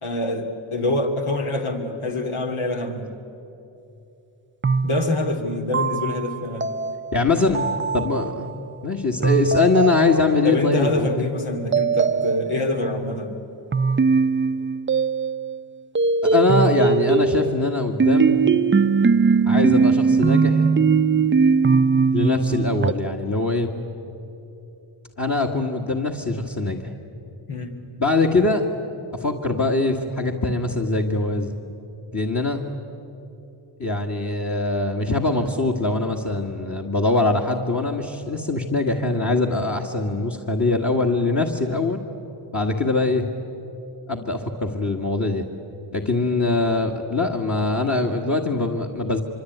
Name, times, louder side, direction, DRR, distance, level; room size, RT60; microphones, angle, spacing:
voice 1, 0.0-3.1 4.8-6.7 10.4-13.4 27.5-27.8, left 2 dB, 80° left, 2 dB, 2.8 m, -25 dB
sound 1, 4.6-8.5 9.2-10.7 11.7-12.9 13.7-15.6 15.9-22.9, right 5 dB, 25° right, 0.5 m, -20 dB
voice 2, 7.1-7.7 7.9-8.5 8.8-11.3 16.2-18.4 19.5-20.6 22.1-23.7 25.2-26.9 28.0-28.7 29.2-31.5 32.1-32.6 33.8-42.0 42.5-43.2 44.1-45.5 45.9-49.2, left 3 dB, 35° left, 4 dB, 2.0 m, -22 dB
24.5 x 24.5 x 9.5 m, 2.9 s
cardioid pair, 55°, 48 cm